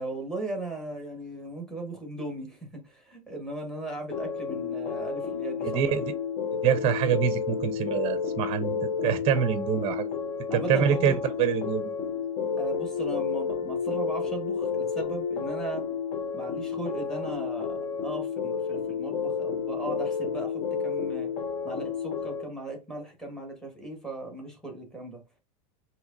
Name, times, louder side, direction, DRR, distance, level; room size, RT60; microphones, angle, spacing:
voice 1, 0.0-2.6 2.8-6.0 10.5-11.2 12.6-15.8 16.3-21.3 21.6-25.2, right 2 dB, 5° left, 1.5 m, -37 dB
sound 1, 4.1-22.4, left 6 dB, 40° left, 0.9 m, -31 dB
voice 2, 5.6-6.1 6.6-10.1 10.5-11.9, right 8 dB, 30° right, 0.6 m, -26 dB
6.1 x 2.9 x 2.6 m
supercardioid pair, 145°, 18 cm